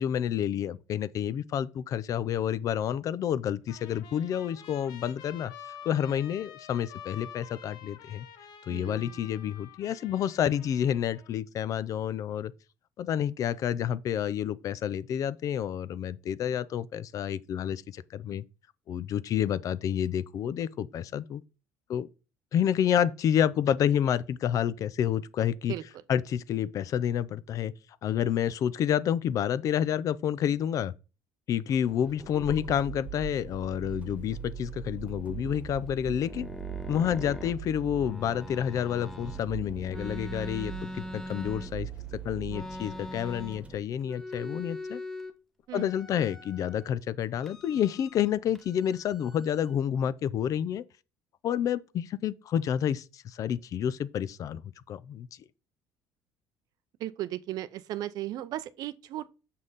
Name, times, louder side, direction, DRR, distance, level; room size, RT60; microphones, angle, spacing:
voice 1, 0.0-5.5 5.9-8.3 8.7-12.5 13.0-18.4 18.9-21.4 21.9-22.1 22.5-25.7 26.1-27.7 28.0-30.9 31.5-36.5 36.9-45.0 45.7-50.8 51.4-54.6 54.9-55.3, left 9 dB, 50° left, 0.5 m, -29 dB
Trumpet, 3.7-11.3, left 9 dB, 70° left, 1.2 m, -48 dB
voice 2, 8.7-9.3 25.7-25.8 45.7-45.9 57.0-59.3, right 14 dB, 65° right, 0.6 m, -36 dB
sound 1, 31.7-43.8, right 7 dB, 15° right, 1.3 m, -41 dB
sound 2, 35.8-39.4 39.9-42.0 42.5-43.7 44.0-45.3 45.7-46.9 47.4-48.3 48.6-49.7, left 1 dB, 5° left, 0.9 m, -42 dB
6.5 x 5.5 x 4.0 m
cardioid pair, 110°, 7 cm